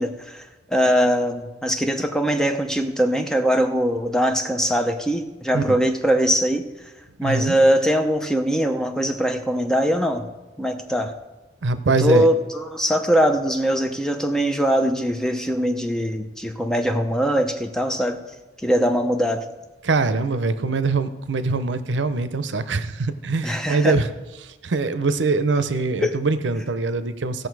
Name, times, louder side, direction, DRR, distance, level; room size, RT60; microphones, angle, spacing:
voice 1, 0.0-6.7 7.2-10.3 10.6-11.1 12.0-18.2 18.6-19.4 23.4-24.0 26.0-26.2, equal, 5° left, 5 dB, 0.6 m, -21 dB
voice 2, 7.2-7.5 11.6-12.2 19.8-24.1 24.4-27.5, right 3 dB, 80° right, 12 dB, 0.6 m, -23 dB
16.5 x 6.5 x 4.7 m, 1.1 s
head